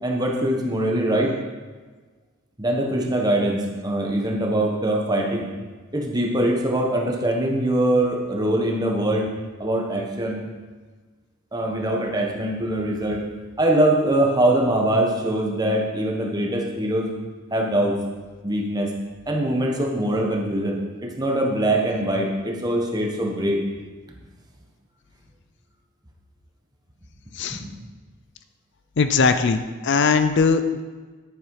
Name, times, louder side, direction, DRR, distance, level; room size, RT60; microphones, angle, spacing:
voice 1, 0.0-1.4 2.6-5.5 5.9-9.3 9.6-10.5 11.5-13.2 13.6-17.1 17.5-18.0 18.4-18.9 19.3-23.6 27.5-27.7, right 1 dB, 20° right, 1 dB, 1.3 m, -23 dB
voice 2, 29.0-30.8, left 5 dB, 55° left, 10 dB, 0.5 m, -20 dB
10.5 x 9.0 x 4.9 m, 1.4 s
head